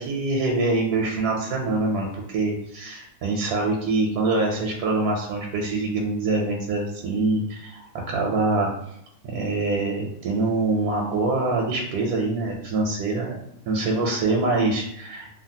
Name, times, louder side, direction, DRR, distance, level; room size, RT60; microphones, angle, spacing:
voice 1, 0.0-7.8 8.1-8.7 9.2-13.3 13.7-15.4, right 3 dB, 85° right, 0 dB, 1.1 m, -24 dB
3.1 x 2.3 x 2.7 m, 0.75 s
omnidirectional pair, 1.6 m